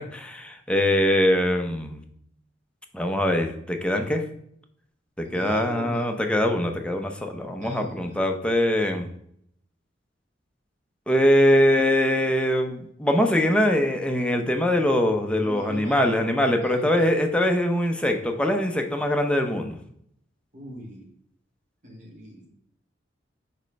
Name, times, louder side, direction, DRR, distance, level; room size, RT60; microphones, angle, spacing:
voice 1, 0.1-2.0 2.9-4.2 5.2-9.1 11.1-19.8, left 1 dB, 5° left, 4 dB, 0.6 m, -22 dB
voice 2, 5.2-6.1 7.4-8.2 15.4-16.1 16.5-17.1 20.5-21.1 21.8-22.5, equal, 45° right, 0 dB, 1.8 m, -40 dB
5.3 x 4.4 x 5.2 m, 0.70 s
head